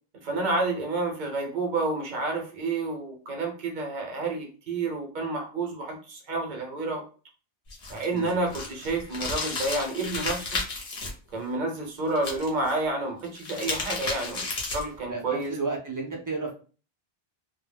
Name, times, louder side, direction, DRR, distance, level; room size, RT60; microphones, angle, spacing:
voice 1, 0.2-7.0 7.9-10.5 11.3-14.5 14.7-15.5, right 2 dB, 50° right, 2 dB, 0.8 m, -29 dB
sound 1, 7.7-11.1 12.2-12.7 13.2-15.0, left 3 dB, 45° left, 0.8 m, -33 dB
voice 2, 15.1-16.5, right 3 dB, 30° right, -1 dB, 0.4 m, -32 dB
2.2 x 2.1 x 3.3 m, 0.37 s
omnidirectional pair, 1.1 m